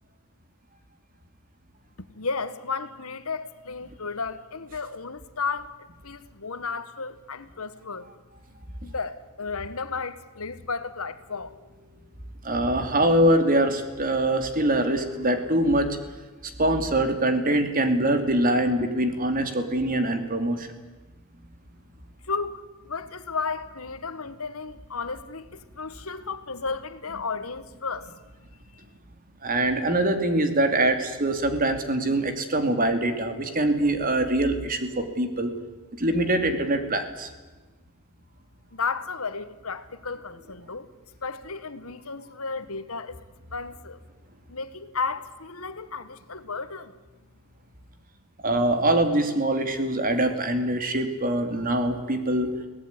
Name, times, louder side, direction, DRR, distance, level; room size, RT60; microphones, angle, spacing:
voice 1, 2.1-5.7 6.0-8.1 8.8-11.5 22.2-28.1 28.7-28.8 38.7-40.9 41.2-43.2 43.5-44.0 44.5-46.9, left 4 dB, 75° left, 1.5 m, -33 dB
voice 2, 12.4-16.0 16.6-20.7 29.4-35.5 36.0-37.3 48.4-52.5, right 1 dB, 40° right, 2.7 m, -23 dB
23.0 x 17.5 x 9.8 m
head